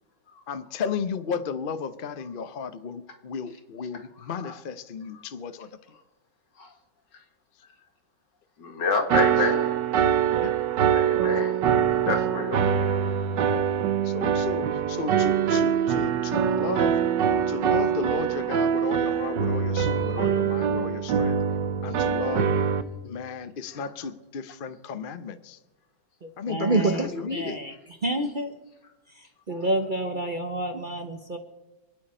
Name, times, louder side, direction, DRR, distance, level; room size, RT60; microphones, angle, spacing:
voice 1, 0.5-5.7 10.4-10.6 13.5-13.7 14.0-17.0 17.5-21.4 21.8-22.5 23.0-25.6 26.4-27.6, left 6 dB, 55° left, 10 dB, 0.6 m, -34 dB
voice 2, 8.6-9.8 10.9-11.6 12.0-12.7, left 4 dB, 80° left, 3 dB, 2.6 m, -28 dB
sound 1, 9.1-22.8, right 8 dB, 80° right, 1.6 m, -24 dB
voice 3, 26.2-27.7 28.0-28.6 29.1-31.4, right 2 dB, 35° right, 6 dB, 0.8 m, -28 dB
27.0 x 9.5 x 4.3 m, 1.1 s
omnidirectional pair, 1.9 m